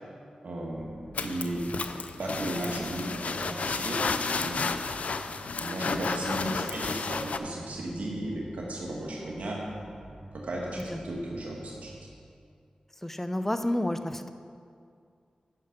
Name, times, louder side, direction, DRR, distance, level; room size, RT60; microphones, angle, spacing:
voice 1, 0.4-0.9 1.2-1.7 2.2-4.6 5.6-9.6 10.3-11.9, right 1 dB, 75° right, -2 dB, 1.5 m, -35 dB
sound 1, 0.7-12.0, right 1 dB, 40° right, 2.0 m, -48 dB
sound 2, 1.1-7.4, left 4 dB, 75° left, 0.4 m, -32 dB
voice 2, 13.0-14.3, left 1 dB, 10° left, 9 dB, 0.6 m, -29 dB
9.6 x 6.3 x 5.9 m, 2.3 s
cardioid pair, 45°, 2 cm